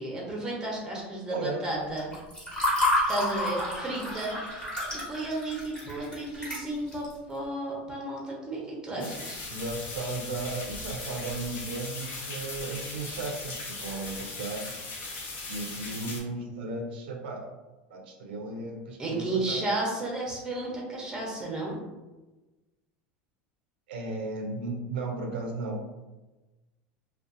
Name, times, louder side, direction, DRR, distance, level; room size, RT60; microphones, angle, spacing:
voice 1, 0.0-2.1 3.1-4.4 4.9-9.4 19.0-21.8, right 2 dB, 15° right, -3 dB, 0.7 m, -33 dB
voice 2, 1.3-1.7 8.9-14.7 15.5-17.5 17.9-19.8 23.9-25.8, right 3 dB, 90° right, 1 dB, 0.5 m, -35 dB
Water / Fill (with liquid), 2.0-7.1, left 1 dB, 15° left, 1.0 m, -30 dB
sound 1, 9.0-16.2, left 3 dB, 45° left, 0.7 m, -38 dB
2.5 x 2.3 x 2.5 m, 1.1 s
supercardioid pair, 130°, 5 cm